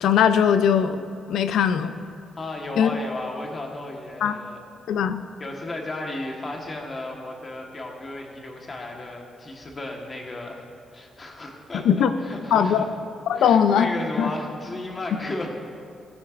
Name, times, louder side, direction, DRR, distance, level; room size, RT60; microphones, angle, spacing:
voice 1, 0.0-1.9 2.8-2.9 4.2-4.4 4.9-5.2 11.8-12.1 12.5-12.9 13.3-13.9 14.2-14.3, left 8 dB, 80° left, 10 dB, 0.5 m, -20 dB
voice 2, 2.4-4.6 5.4-10.6 10.9-12.9 13.3-15.5, left 2 dB, 25° left, 0 dB, 1.3 m, -34 dB
17.5 x 10.0 x 2.5 m, 2.4 s
wide cardioid pair, 175°, 0 cm